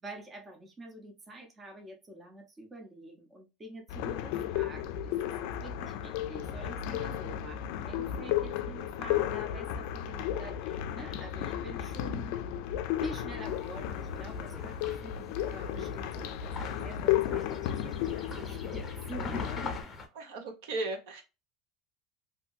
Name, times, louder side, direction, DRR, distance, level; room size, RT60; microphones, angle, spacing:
voice 1, 0.0-12.4 13.0-17.6 17.8-19.8, right 1 dB, 20° right, 0.6 m, -47 dB
sound 1, 3.9-19.8, left 11 dB, 65° left, 0.3 m, -34 dB
sound 2, 13.4-20.1, left 3 dB, 15° left, 0.8 m, -43 dB
voice 2, 20.2-21.2, right 2 dB, 80° right, 1.0 m, -36 dB
2.8 x 2.6 x 2.3 m
cardioid pair, 155°, 0 cm